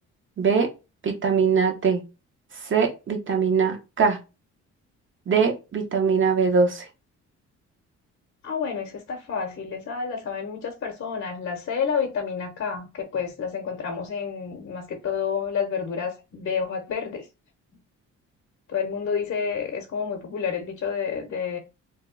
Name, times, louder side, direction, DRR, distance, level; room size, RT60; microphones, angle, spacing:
voice 1, 0.4-0.7 1.0-2.0 2.7-4.2 5.3-6.8, right 5 dB, 40° right, 1.1 m, -22 dB
voice 2, 8.4-17.3 18.7-21.6, left 6 dB, 45° left, 0.8 m, -29 dB
2.8 x 2.2 x 3.7 m
cardioid pair, 90°, 30 cm